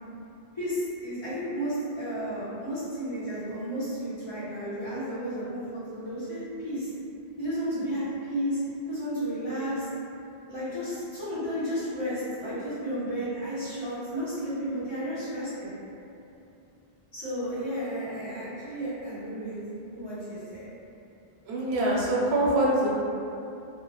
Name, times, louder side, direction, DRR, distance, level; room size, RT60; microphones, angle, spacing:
voice 1, 0.5-6.9 7.4-8.6 8.9-9.9 10.5-15.7 17.1-19.5 19.9-20.6, equal, 30° left, -14 dB, 0.8 m, -32 dB
voice 2, 21.5-22.9, right 1 dB, 85° right, -5 dB, 0.8 m, -24 dB
2.1 x 2.1 x 3.0 m, 2.8 s
omnidirectional pair, 1.0 m